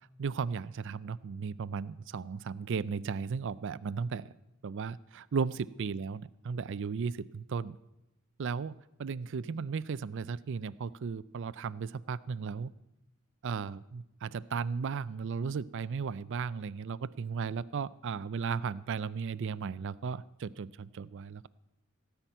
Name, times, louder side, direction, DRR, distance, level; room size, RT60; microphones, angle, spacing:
voice 1, 0.2-4.3 4.6-7.8 8.4-12.7 13.4-21.5, right 5 dB, 55° right, 17 dB, 0.4 m, -35 dB
17.5 x 5.8 x 9.1 m, 0.90 s
head